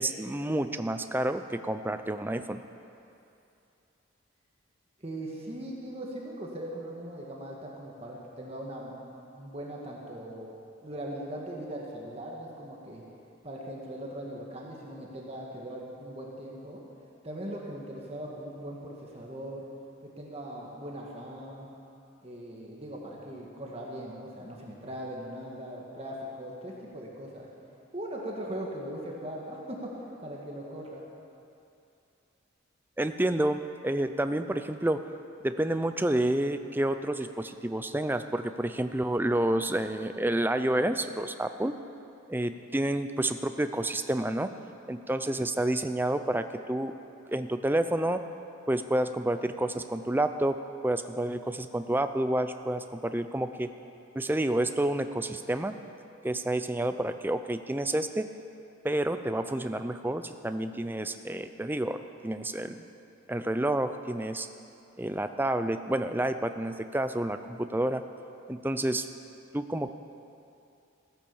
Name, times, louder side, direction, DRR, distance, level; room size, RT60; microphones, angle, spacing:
voice 1, 0.0-2.6 33.0-35.0 35.4-41.7 42.3-44.5 44.9-46.9 47.3-48.2 48.7-50.6 50.8-53.7 54.1-55.8 56.2-58.3 58.8-62.9 63.3-64.5 65.0-68.0 68.5-69.0 69.5-69.9, right 1 dB, 10° right, 9 dB, 0.4 m, -29 dB
voice 2, 5.0-8.9 9.3-10.5 10.8-13.0 13.4-16.8 17.2-19.6 20.0-21.7 22.2-27.5 27.9-31.0, right 1 dB, 30° right, -2 dB, 1.7 m, -40 dB
15.5 x 10.0 x 7.1 m, 2.7 s
head